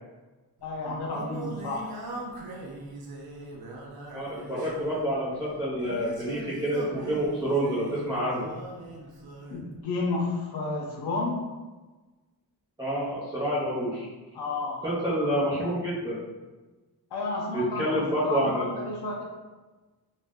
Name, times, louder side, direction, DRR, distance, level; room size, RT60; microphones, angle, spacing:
voice 1, 0.6-1.9 9.5-11.4 14.3-14.8 17.1-19.2, left 2 dB, 85° left, -2 dB, 0.6 m, -31 dB
Singing, 0.6-9.6, right 2 dB, 70° right, 0.6 m, -41 dB
voice 2, 4.1-8.5 12.8-14.1 14.8-16.2 17.5-18.8, equal, 10° right, -11 dB, 0.6 m, -28 dB
2.5 x 2.1 x 3.4 m, 1.2 s
wide cardioid pair, 135°, 38 cm